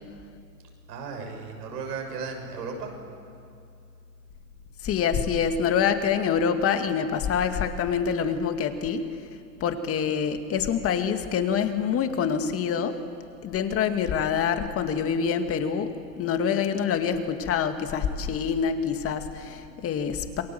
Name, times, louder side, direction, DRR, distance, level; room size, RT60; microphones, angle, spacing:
voice 1, 0.9-2.9, right 5 dB, 70° right, 3 dB, 6.6 m, -35 dB
voice 2, 4.8-9.0 9.6-13.0 13.4-20.4, left 7 dB, 25° left, 7 dB, 2.0 m, -26 dB
28.0 x 21.5 x 7.8 m, 2.4 s
hypercardioid pair, 115°, 49 cm